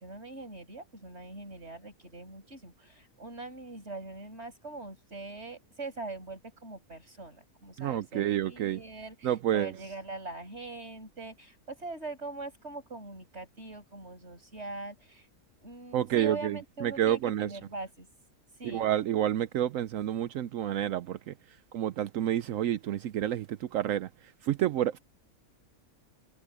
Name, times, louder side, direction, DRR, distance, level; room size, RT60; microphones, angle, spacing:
voice 1, 0.0-15.3 15.6-18.1 18.6-18.9, right 3 dB, 50° right, 7.0 m, -42 dB
voice 2, 7.8-8.8 9.2-9.7 15.9-17.5 18.6-21.3 21.7-24.1 24.4-25.0, right 11 dB, 75° right, 0.9 m, -29 dB
omnidirectional pair, 1.5 m